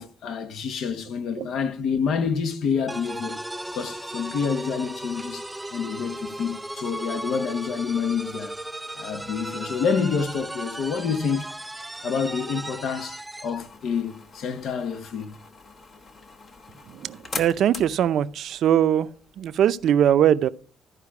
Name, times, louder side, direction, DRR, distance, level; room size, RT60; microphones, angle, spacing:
voice 1, 0.0-3.4 3.7-8.5 9.0-11.5 12.0-15.4, left 6 dB, 75° left, 1.1 m, -28 dB
sound 1, 2.9-13.6, right 1 dB, 10° right, 0.4 m, -36 dB
sound 2, 13.6-19.9, left 4 dB, 50° left, 1.2 m, -42 dB
voice 2, 16.9-19.1 19.4-20.5, right 10 dB, 75° right, 0.5 m, -21 dB
13.5 x 5.0 x 4.8 m
cardioid pair, 90°, 0 cm